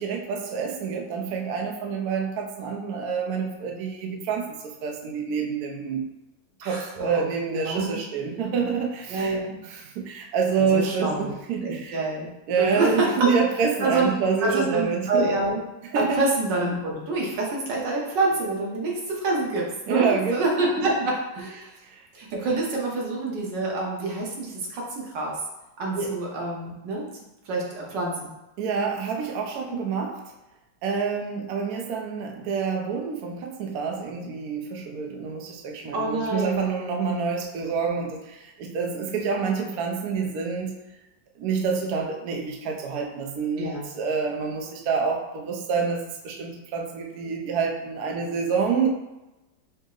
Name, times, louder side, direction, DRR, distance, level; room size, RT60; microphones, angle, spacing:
voice 1, 0.0-6.1 6.6-9.4 9.7-12.0 12.5-15.3 15.9-16.3 19.9-20.3 20.8-20.9 21.8-22.0 22.3-22.4 26.0-26.2 28.6-30.3 30.8-40.8 41.4-48.9, right 5 dB, 70° right, 1 dB, 1.0 m, -27 dB
voice 2, 6.6-7.9 9.1-9.5 10.7-11.3 11.6-12.3 12.6-13.3 13.8-14.1 14.4-15.6 15.9-21.7 22.1-25.4 25.8-27.1 27.5-28.3 35.9-36.6 43.6-43.9, right 2 dB, 85° right, -2 dB, 1.6 m, -27 dB
5.3 x 2.0 x 3.7 m, 0.99 s
omnidirectional pair, 1.8 m